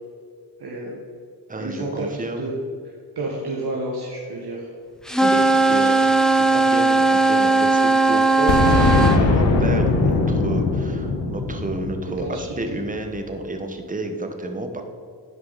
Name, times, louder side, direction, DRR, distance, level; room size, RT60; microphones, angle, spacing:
voice 1, 0.6-0.9 1.6-2.1 2.4-2.5 2.8-4.7 5.0-5.4 5.7-6.0 12.1-12.8, right 2 dB, 60° right, -3 dB, 1.4 m, -31 dB
voice 2, 1.5-2.5 5.3-5.4 5.7-6.1 6.3-14.8, right 2 dB, 20° right, 5 dB, 1.0 m, -30 dB
sound 1, 5.1-9.2, right 3 dB, ahead, 0.4 m, -17 dB
Boom, 8.5-13.2, left 3 dB, 80° left, 1.2 m, -20 dB
11.0 x 4.9 x 4.0 m, 2.2 s
cardioid pair, 60°, 43 cm